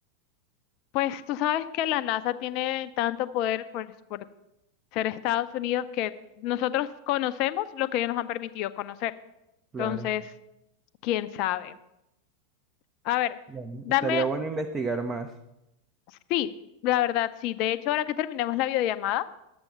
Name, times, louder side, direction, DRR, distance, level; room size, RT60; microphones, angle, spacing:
voice 1, 0.9-4.2 4.9-6.1 6.4-9.1 9.8-10.3 11.0-11.7 13.0-13.4 13.8-14.3 16.3-16.5 16.8-19.3, left 13 dB, 40° left, 13 dB, 0.6 m, -28 dB
voice 2, 9.7-10.1 13.5-15.3, right 4 dB, 20° right, 7 dB, 0.7 m, -30 dB
12.0 x 7.8 x 5.7 m, 0.88 s
figure-of-eight pair, 90°, 0 cm